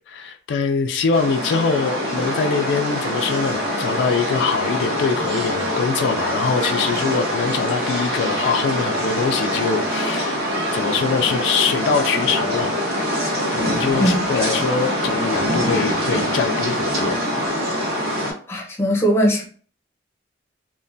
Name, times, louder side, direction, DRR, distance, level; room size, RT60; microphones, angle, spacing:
voice 1, 0.1-10.5 10.7-12.8 13.5-17.2, left 5 dB, 75° left, 0.3 m, -23 dB
sound 1, 1.1-18.3, equal, 55° right, 1.1 m, -24 dB
voice 2, 18.5-19.5, equal, 15° left, 0.6 m, -19 dB
3.1 x 2.1 x 2.6 m
head